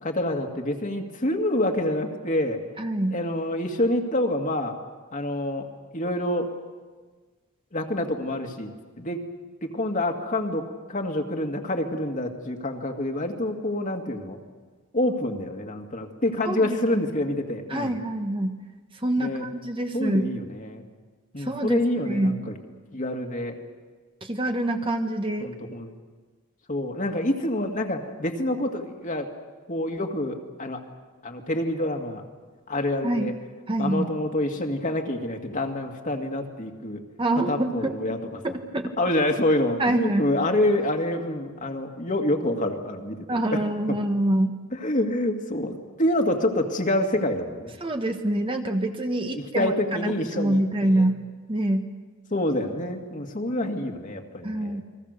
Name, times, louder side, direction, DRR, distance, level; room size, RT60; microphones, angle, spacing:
voice 1, 0.0-2.6 3.1-4.8 5.1-6.5 7.7-9.2 9.6-14.4 14.9-18.0 19.2-19.5 19.9-20.9 21.3-22.5 22.9-23.6 25.4-25.9 26.7-29.3 29.7-30.8 31.2-32.2 32.7-33.4 33.8-37.0 37.4-38.6 39.0-43.2 43.5-44.0 44.7-47.7 49.3-51.1 52.3-54.8, left 1 dB, 40° left, 3 dB, 2.1 m, -27 dB
voice 2, 2.8-3.2 16.4-16.8 17.7-18.6 18.9-20.3 21.4-22.4 24.2-25.5 33.0-33.3 33.7-34.1 37.2-37.9 38.4-38.9 39.8-40.2 43.3-44.5 47.8-51.2 51.5-51.8 54.4-54.8, right 1 dB, 25° right, 5 dB, 1.4 m, -25 dB
29.5 x 22.0 x 6.7 m, 1.4 s
head